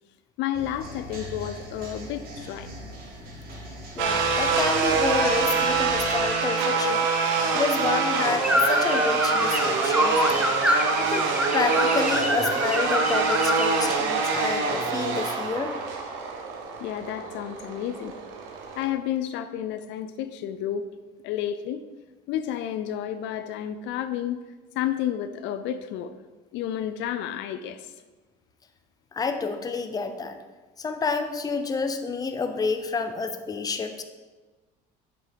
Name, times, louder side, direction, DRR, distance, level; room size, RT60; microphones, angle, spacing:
voice 1, 0.4-2.7 16.8-18.1 18.8-20.9 21.2-21.8 22.3-24.4 24.7-26.1 26.5-27.8, left 10 dB, 70° left, 11 dB, 0.5 m, -31 dB
sound 1, 0.5-6.2, equal, 50° right, 2.3 m, -40 dB
voice 2, 3.9-7.1 7.5-10.5 11.0-15.8 29.1-30.4 30.8-34.0, left 4 dB, 20° left, 8 dB, 0.7 m, -29 dB
sound 2, 4.0-18.8, right 4 dB, 80° right, 1.3 m, -25 dB
sound 3, 8.4-13.8, equal, 5° right, 1.0 m, -26 dB
7.4 x 6.1 x 5.2 m, 1.3 s
cardioid pair, 125°, 20 cm